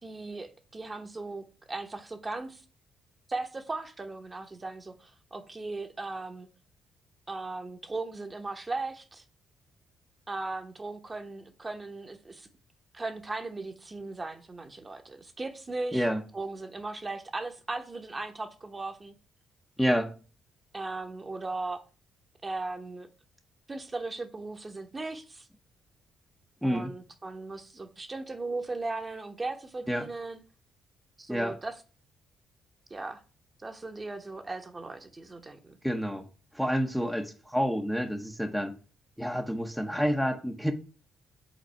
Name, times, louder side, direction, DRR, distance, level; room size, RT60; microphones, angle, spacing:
voice 1, 0.0-2.6 3.3-6.5 7.3-9.2 10.3-12.5 12.9-16.0 16.3-19.1 20.7-21.8 22.4-23.1 23.7-25.5 26.6-30.4 31.2-31.8 32.9-33.2 33.6-35.8, right 3 dB, 25° right, 1.0 m, -37 dB
voice 2, 19.8-20.1 26.6-26.9 29.9-30.1 31.3-31.6 35.8-36.2 36.5-38.7 39.2-40.7, equal, ahead, 0.8 m, -28 dB
5.1 x 3.9 x 5.7 m
cardioid pair, 90°, 0 cm